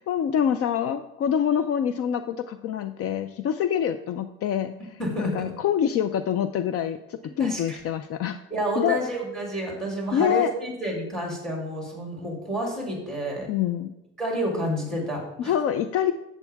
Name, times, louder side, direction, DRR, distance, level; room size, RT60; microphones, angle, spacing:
voice 1, 0.0-8.4 8.8-9.0 10.1-10.5 13.5-13.9 15.4-16.1, left 9 dB, 50° left, 10 dB, 0.5 m, -26 dB
voice 2, 5.0-5.5 7.4-7.8 8.5-13.5 14.2-15.5, right 1 dB, ahead, -1 dB, 3.0 m, -29 dB
11.5 x 8.2 x 3.5 m, 0.91 s
cardioid pair, 150°, 30 cm